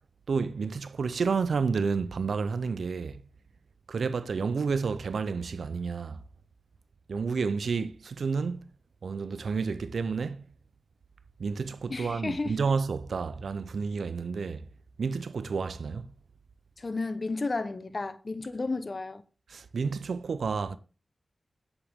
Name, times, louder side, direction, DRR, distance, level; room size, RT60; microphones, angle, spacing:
voice 1, 0.3-3.2 3.9-6.2 7.1-8.7 9.0-10.5 11.4-14.7 15.0-16.1 19.5-20.8, right 5 dB, 90° right, 0.5 m, -30 dB
voice 2, 11.9-12.6 16.8-19.2, left 3 dB, 55° left, 0.9 m, -32 dB
9.9 x 8.3 x 3.6 m
cardioid pair, 45°, 0 cm